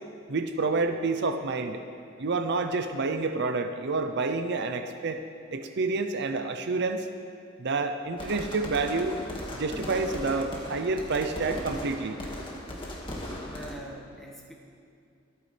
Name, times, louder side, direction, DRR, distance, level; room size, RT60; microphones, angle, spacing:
voice 1, 0.3-1.8 2.2-5.2 5.5-7.1 7.6-9.2 9.5-12.2, right 3 dB, 60° right, 7 dB, 0.6 m, -28 dB
sound 1, 8.2-13.7, left 1 dB, 25° left, 1.9 m, -38 dB
voice 2, 13.4-14.5, equal, ahead, -3 dB, 1.7 m, -43 dB
26.5 x 9.3 x 3.4 m, 2.4 s
head